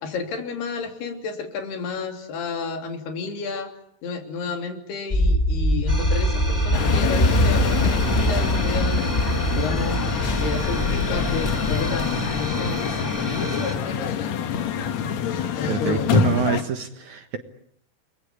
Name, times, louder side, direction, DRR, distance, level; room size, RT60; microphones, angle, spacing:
voice 1, 0.0-3.7 4.0-9.1 9.6-14.6 15.6-16.5, left 5 dB, 80° left, 5 dB, 5.0 m, -32 dB
sound 1, 5.1-13.2, equal, 15° left, 2.6 m, -23 dB
sound 2, 5.9-13.7, equal, 5° right, 2.0 m, -32 dB
sound 3, 6.7-16.6, left 6 dB, 60° left, 2.0 m, -26 dB
voice 2, 15.7-17.4, right 7 dB, 60° right, 8 dB, 2.3 m, -26 dB
30.0 x 22.5 x 8.4 m, 0.68 s
omnidirectional pair, 4.6 m